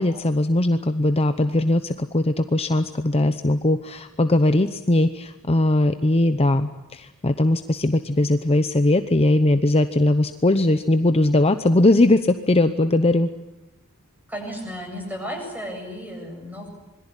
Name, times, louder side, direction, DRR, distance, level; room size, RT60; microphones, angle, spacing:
voice 1, 0.0-13.3, left 1 dB, 25° left, 9 dB, 0.9 m, -20 dB
voice 2, 14.3-16.7, equal, 10° right, 3 dB, 8.0 m, -33 dB
26.5 x 22.0 x 9.9 m, 0.98 s
head